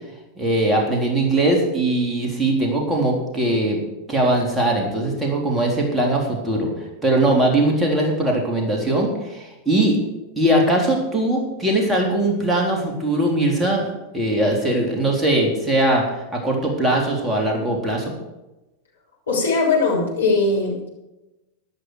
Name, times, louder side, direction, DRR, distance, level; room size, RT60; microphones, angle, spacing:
voice 1, 0.4-3.8 4.1-6.7 7.0-10.0 10.4-16.0 16.3-18.1, right 1 dB, 10° right, -1 dB, 3.7 m, -20 dB
voice 2, 19.3-20.9, left 3 dB, 70° left, -2 dB, 4.2 m, -20 dB
13.5 x 11.5 x 4.9 m, 1.0 s
figure-of-eight pair, 90°, 0 cm